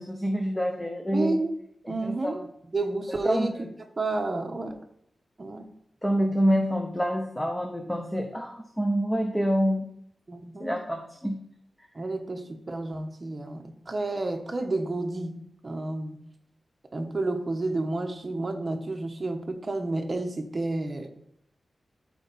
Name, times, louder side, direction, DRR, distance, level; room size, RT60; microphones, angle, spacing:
voice 1, 0.0-1.4 1.8-2.5 3.1-3.7 6.0-9.9 10.6-11.4, equal, 5° left, 3 dB, 0.7 m, -27 dB
voice 2, 1.1-1.5 1.9-2.4 2.7-3.5 4.0-4.8 5.4-5.6 10.3-10.8 11.9-16.2 16.9-21.1, right 2 dB, 30° right, 4 dB, 1.0 m, -30 dB
13.0 x 4.6 x 4.1 m, 0.73 s
wide cardioid pair, 175°, 0 cm